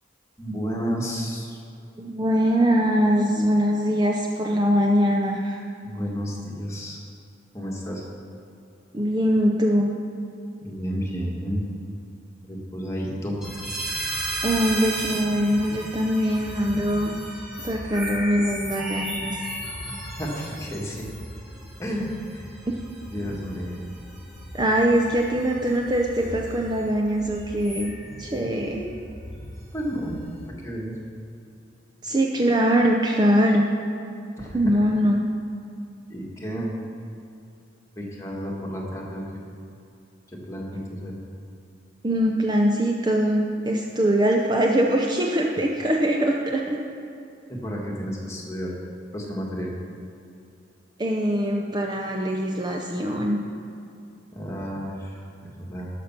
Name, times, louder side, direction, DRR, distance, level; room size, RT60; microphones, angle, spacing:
voice 1, 0.4-1.6 5.8-7.0 7.5-8.0 10.6-11.6 12.5-13.4 19.6-19.7 20.2-21.1 21.8-22.5 23.1-23.8 28.7-29.0 29.7-30.1 30.6-30.9 34.4-34.9 36.1-36.7 37.9-39.4 40.3-41.1 47.5-48.7 49.1-49.7 54.3-55.9, equal, 15° left, -3 dB, 1.7 m, -31 dB
voice 2, 2.0-5.6 8.9-9.9 14.4-17.2 17.6-19.4 24.5-27.9 28.2-28.9 32.0-33.7 34.5-35.2 42.0-46.8 51.0-53.4, equal, 20° right, 0 dB, 0.6 m, -22 dB
sound 1, 13.4-30.4, right 1 dB, 5° right, 2.9 m, -35 dB
12.0 x 6.7 x 5.8 m, 2.6 s
head